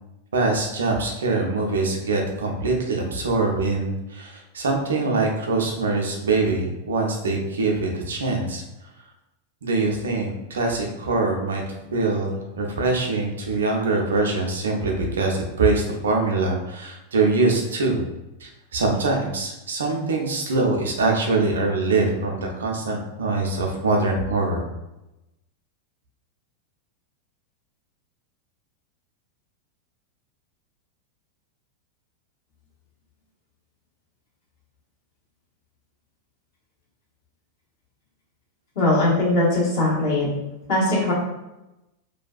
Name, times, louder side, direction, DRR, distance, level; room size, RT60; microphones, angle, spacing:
voice 1, 0.3-8.6 9.6-11.6 11.9-18.0 18.4-24.6, right 3 dB, 65° right, 1 dB, 0.5 m, -23 dB
voice 2, 38.7-40.3 40.7-41.1, left 2 dB, 50° left, -7 dB, 1.3 m, -20 dB
2.6 x 2.2 x 2.4 m, 0.96 s
figure-of-eight pair, 90°, 0 cm